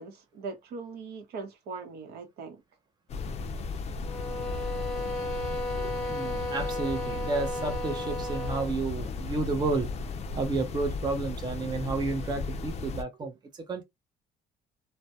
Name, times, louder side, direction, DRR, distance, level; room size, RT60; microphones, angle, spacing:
voice 1, 0.0-2.6, right 4 dB, 70° right, 0.8 m, -40 dB
sound 1, 3.1-13.0, left 3 dB, 40° left, 0.4 m, -35 dB
sound 2, 4.0-8.8, left 1 dB, 5° left, 0.9 m, -34 dB
voice 2, 5.8-9.9 10.4-13.8, right 3 dB, 25° right, 0.6 m, -31 dB
2.2 x 2.1 x 2.7 m
cardioid pair, 110°, 17 cm